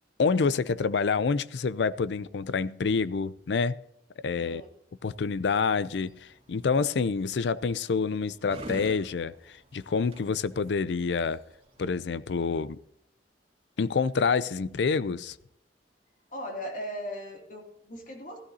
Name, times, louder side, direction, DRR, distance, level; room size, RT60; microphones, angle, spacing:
voice 1, 0.2-3.7 4.2-4.6 5.0-11.4 11.8-12.8 13.8-15.4, left 5 dB, 75° left, 0.4 m, -27 dB
voice 2, 4.4-4.7 14.6-14.7 16.3-18.4, equal, 45° left, 2.5 m, -38 dB
sound 1, 5.9-12.0, right 1 dB, 30° right, 2.0 m, -47 dB
15.0 x 13.0 x 2.8 m
head